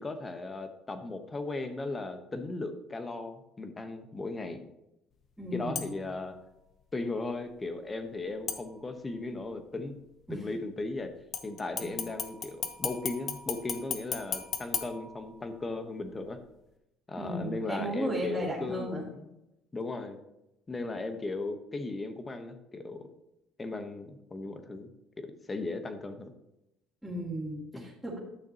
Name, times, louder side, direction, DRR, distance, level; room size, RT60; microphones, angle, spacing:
voice 1, 0.0-4.7 5.5-6.4 6.9-9.9 10.3-11.1 11.4-16.4 17.1-19.4 19.7-20.2 20.7-23.1 23.6-24.9 25.2-26.3 27.7-27.9, left 3 dB, 25° left, 8 dB, 1.1 m, -37 dB
voice 2, 5.4-5.9 10.3-10.4 11.8-11.9 17.1-19.0 27.0-28.2, right 1 dB, 5° right, -8 dB, 2.5 m, -35 dB
sound 1, 5.8-6.2 8.5-9.2 11.3-15.7 16.2-16.3, left 7 dB, 50° left, 1.0 m, -37 dB
11.5 x 6.5 x 2.9 m, 0.88 s
supercardioid pair, 85°, 0 cm